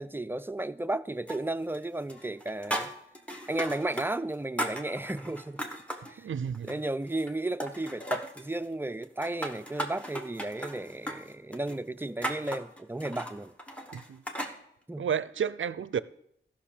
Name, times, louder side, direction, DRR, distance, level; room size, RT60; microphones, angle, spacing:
voice 1, 0.0-2.9 3.5-5.6 6.1-6.3 6.6-13.5 14.9-15.1, right 2 dB, 10° right, 0.4 m, -34 dB
sound 1, 1.3-4.1 4.3-6.1 6.5-7.3 7.6-8.5 9.0-14.6, right 1 dB, 5° left, 1.3 m, -37 dB
voice 2, 6.2-6.7 13.9-14.2 15.0-16.0, right 7 dB, 70° right, 0.4 m, -31 dB
14.5 x 5.8 x 5.0 m
wide cardioid pair, 80°, 21 cm